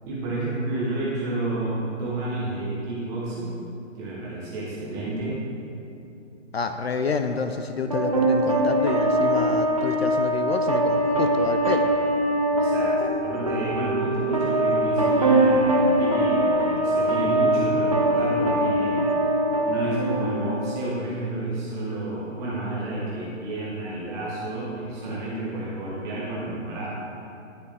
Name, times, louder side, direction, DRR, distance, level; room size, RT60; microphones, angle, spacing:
voice 1, 0.0-3.6 4.0-5.4 12.5-12.9 13.2-19.1 19.6-26.9, right 2 dB, 10° right, -7 dB, 0.9 m, -30 dB
voice 2, 6.5-11.9, left 4 dB, 55° left, 7 dB, 0.5 m, -28 dB
sound 1, 7.9-20.9, right 1 dB, 30° right, 0.4 m, -22 dB
9.8 x 9.7 x 3.4 m, 2.7 s
hypercardioid pair, 160°, 39 cm